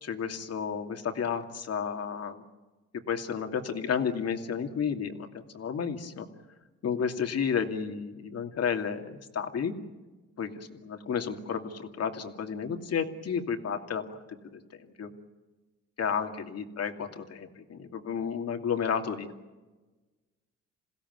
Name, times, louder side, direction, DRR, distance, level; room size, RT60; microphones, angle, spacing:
voice 1, 0.0-2.4 3.1-6.3 6.8-9.7 10.4-14.2 15.0-15.1 16.0-19.3, left 7 dB, 55° left, 5 dB, 2.6 m, -32 dB
28.0 x 16.5 x 9.5 m, 1.2 s
cardioid pair, 90°, 30 cm